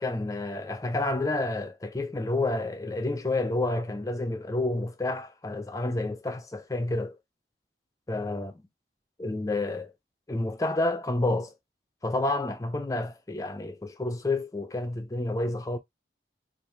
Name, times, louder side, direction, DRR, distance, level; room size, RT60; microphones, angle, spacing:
voice 1, 0.0-7.2 8.1-8.5 9.2-9.9 10.3-11.5 12.0-15.8, left 2 dB, 20° left, 0.4 m, -29 dB
2.9 x 2.4 x 3.3 m
head